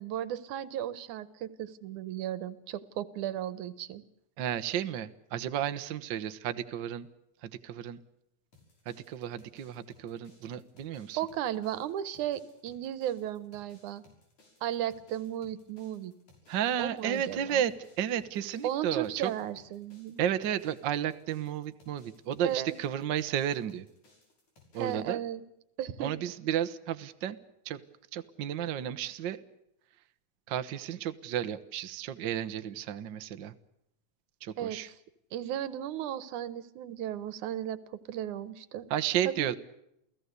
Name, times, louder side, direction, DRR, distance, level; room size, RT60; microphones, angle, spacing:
voice 1, 0.0-4.0 11.2-14.0 14.6-16.1 16.8-17.6 18.6-20.2 22.4-22.8 24.8-25.4 25.8-26.1 34.6-34.8 35.3-37.8 38.1-38.9 39.4-39.5, right 11 dB, 75° right, 16 dB, 2.5 m, -35 dB
voice 2, 4.4-7.1 7.4-8.0 8.8-11.2 16.5-19.3 20.2-23.9 24.7-25.2 26.0-27.4 27.6-27.8 28.1-29.4 30.5-33.5 34.4-34.9 38.9-39.6, right 10 dB, 60° right, 10 dB, 1.2 m, -32 dB
sound 1, 8.5-25.0, left 2 dB, 75° left, 7.6 m, -63 dB
29.0 x 17.0 x 8.2 m, 0.81 s
omnidirectional pair, 3.5 m